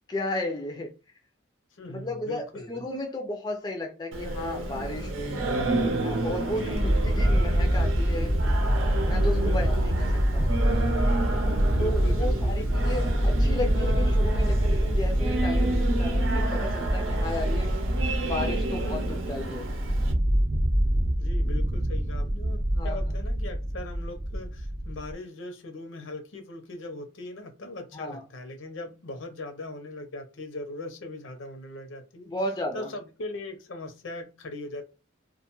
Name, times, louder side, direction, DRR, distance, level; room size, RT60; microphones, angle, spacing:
voice 1, 0.1-0.9 1.9-2.4 2.7-5.4 6.0-8.4 9.0-10.6 11.8-17.7 18.2-19.7 22.7-23.1 27.9-28.2 32.3-32.9, left 1 dB, 20° left, 0.3 m, -34 dB
voice 2, 1.7-2.8 6.6-6.8 9.4-9.8 11.7-13.0 21.2-32.3 32.7-34.8, left 2 dB, 80° left, 0.7 m, -40 dB
Singing, 4.1-20.1, right 2 dB, 90° right, 0.6 m, -31 dB
sound 1, 6.7-25.1, equal, 50° right, 0.7 m, -25 dB
2.5 x 2.2 x 2.9 m
head